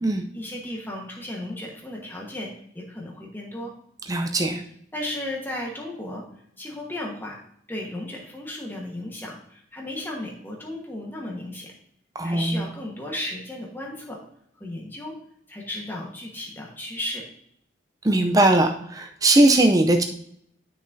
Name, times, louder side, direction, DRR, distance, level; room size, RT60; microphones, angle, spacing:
voice 1, 0.3-3.7 4.9-6.2 6.6-7.4 7.7-11.8 12.2-14.2 14.6-15.1 15.5-17.3, left 1 dB, 10° left, -2 dB, 1.3 m, -34 dB
voice 2, 4.1-4.6 12.2-12.6 18.0-20.0, right 2 dB, 20° right, 4 dB, 0.5 m, -19 dB
10.0 x 6.2 x 2.7 m, 0.69 s
head